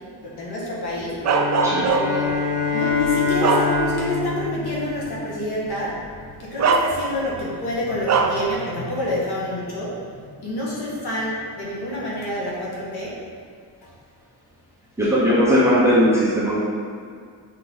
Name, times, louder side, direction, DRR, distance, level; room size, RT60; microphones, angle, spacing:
voice 1, 0.2-1.2 1.9-2.3 2.7-13.2, left 1 dB, 60° left, -5 dB, 1.6 m, -28 dB
sound 1, 1.2-5.7, left 4 dB, 15° left, 1.3 m, -25 dB
Bark, 1.2-2.3 2.9-4.2 4.6-4.8 5.9-6.0 6.6-7.4 8.1-8.5, right 4 dB, 40° right, 0.4 m, -21 dB
voice 2, 15.0-16.6, equal, 5° right, -9 dB, 1.1 m, -18 dB
6.1 x 4.5 x 4.0 m, 2.1 s
wide cardioid pair, 175°, 44 cm